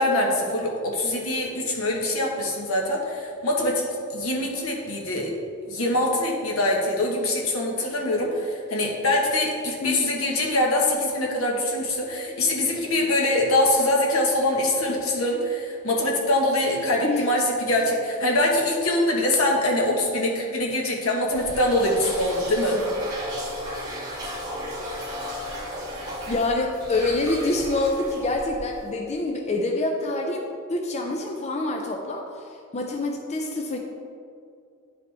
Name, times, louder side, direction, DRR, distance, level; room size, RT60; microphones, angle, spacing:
voice 1, 0.0-3.8 4.1-5.3 5.7-22.8, left 1 dB, 75° left, -1 dB, 1.3 m, -23 dB
voice 2, 9.8-10.2 17.0-17.3 26.3-33.8, left 2 dB, 30° left, 2 dB, 0.5 m, -26 dB
sound 1, 21.3-28.9, equal, 20° right, 1.8 m, -35 dB
10.5 x 5.0 x 3.3 m, 2.4 s
head